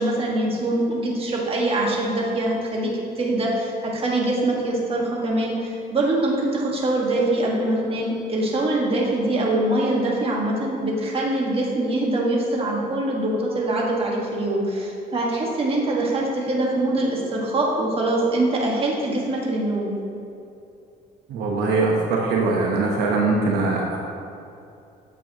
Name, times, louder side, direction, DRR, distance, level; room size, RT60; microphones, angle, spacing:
voice 1, 0.0-2.9 3.2-19.9, right 1 dB, 35° right, -3 dB, 1.6 m, -23 dB
voice 2, 21.3-24.0, right 3 dB, 75° right, -1 dB, 1.0 m, -22 dB
8.8 x 6.9 x 3.0 m, 2.7 s
cardioid pair, 110°, 17 cm